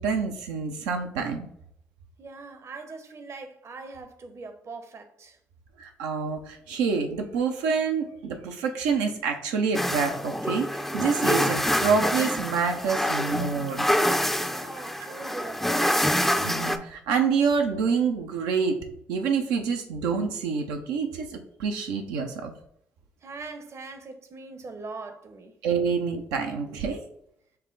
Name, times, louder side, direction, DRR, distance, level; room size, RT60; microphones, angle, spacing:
voice 1, 0.0-1.5 2.7-2.8 5.8-13.9 16.4-18.8 19.1-22.5 25.6-27.0, right 5 dB, 85° right, 0.6 m, -27 dB
voice 2, 2.2-5.4 14.4-16.3 23.2-25.6, right 3 dB, 45° right, 0.8 m, -41 dB
sound 1, 9.7-16.8, equal, 5° left, 0.4 m, -26 dB
5.4 x 2.1 x 3.8 m
hypercardioid pair, 50°, 6 cm